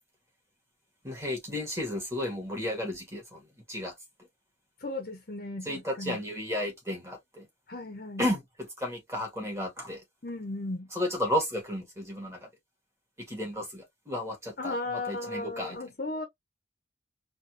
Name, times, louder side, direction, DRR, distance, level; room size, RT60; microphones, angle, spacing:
voice 1, 1.0-3.9 5.6-7.5 8.2-10.0 10.9-12.5 13.2-15.8, left 1 dB, 15° right, 1.9 m, -33 dB
voice 2, 4.8-6.2 7.7-8.2 10.2-10.9 14.6-16.3, left 2 dB, 50° left, 0.9 m, -35 dB
4.2 x 3.0 x 2.9 m
head